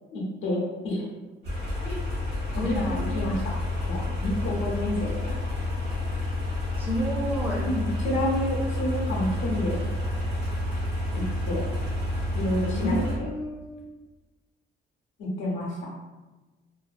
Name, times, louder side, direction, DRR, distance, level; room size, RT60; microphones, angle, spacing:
voice 1, 0.1-1.1 1.8-2.0 2.5-3.5 3.8-5.4 7.6-9.8 11.1-11.7 12.3-13.3 15.2-15.8, left 1 dB, 85° left, -3 dB, 0.6 m, -29 dB
sound 1, 1.4-13.1, left 1 dB, 60° right, 1.2 m, -29 dB
voice 2, 2.5-3.4 6.8-7.6 12.7-13.8, equal, 10° right, -5 dB, 0.4 m, -31 dB
2.5 x 2.2 x 2.5 m, 1.2 s
cardioid pair, 180°, 20 cm